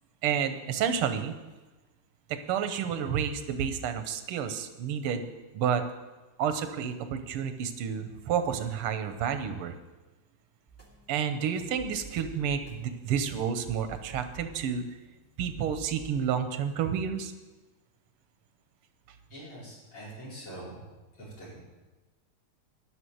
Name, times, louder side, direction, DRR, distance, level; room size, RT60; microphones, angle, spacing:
voice 1, 0.2-1.3 2.3-5.2 5.5-5.8 6.4-9.7 11.1-14.9 15.4-17.3, right 8 dB, 85° right, 9 dB, 1.8 m, -30 dB
sound 1, 10.7-16.2, right 6 dB, 5° left, 1.9 m, -50 dB
voice 2, 19.3-20.9 21.2-21.6, right 1 dB, 80° left, -8 dB, 5.6 m, -44 dB
11.5 x 5.9 x 7.8 m, 1.2 s
omnidirectional pair, 2.4 m